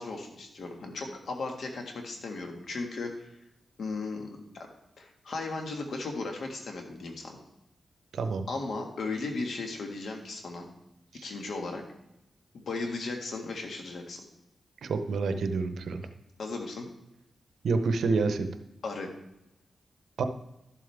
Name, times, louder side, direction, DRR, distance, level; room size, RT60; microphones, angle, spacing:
voice 1, 0.0-3.4 3.8-4.3 4.5-4.7 5.0-7.4 8.5-10.7 11.2-11.8 12.5-14.2 16.4-16.9 18.8-19.1, left 3 dB, 75° left, 3 dB, 1.7 m, -36 dB
voice 2, 8.1-8.5 11.1-11.3 14.8-16.0 17.6-18.5 20.2-20.3, right 4 dB, 85° right, 8 dB, 0.8 m, -28 dB
12.5 x 7.4 x 3.5 m, 0.88 s
cardioid pair, 85°, 0 cm